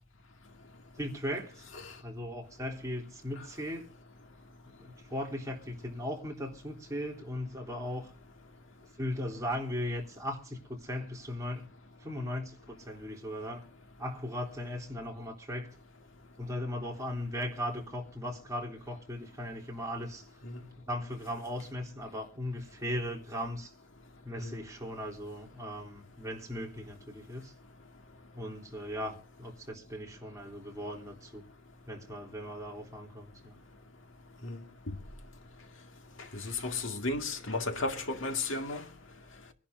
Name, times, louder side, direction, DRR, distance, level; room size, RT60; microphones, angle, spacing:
voice 1, 1.0-1.7 2.0-3.9 4.6-8.1 9.0-11.7 12.0-13.7 14.0-15.7 16.4-20.3 20.9-23.7 24.2-27.5 28.3-31.5 31.9-33.6, equal, 15° right, 3.3 m, -38 dB
voice 2, 36.4-38.8, left 3 dB, 60° left, 2.0 m, -34 dB
25.0 x 11.0 x 2.7 m
head